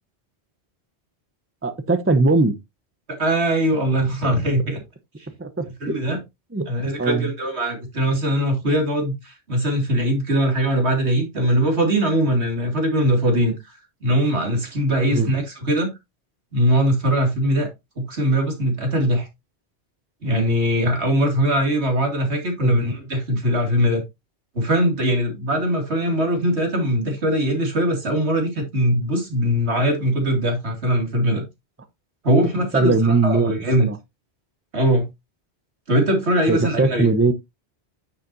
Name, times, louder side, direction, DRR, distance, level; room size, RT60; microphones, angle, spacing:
voice 1, 1.6-2.6 5.4-5.6 6.5-6.7 7.0-7.3 15.1-15.3 22.6-22.9 32.7-33.5 33.8-34.0 36.5-37.3, right 3 dB, 15° right, 0.8 m, -20 dB
voice 2, 3.1-4.8 5.6-6.2 6.7-13.6 14.0-15.9 16.5-17.7 18.0-19.3 20.2-24.0 24.5-31.4 32.2-33.9 34.7-35.1 35.9-37.1, equal, 80° right, 2.7 m, -21 dB
9.5 x 7.3 x 2.7 m
omnidirectional pair, 1.1 m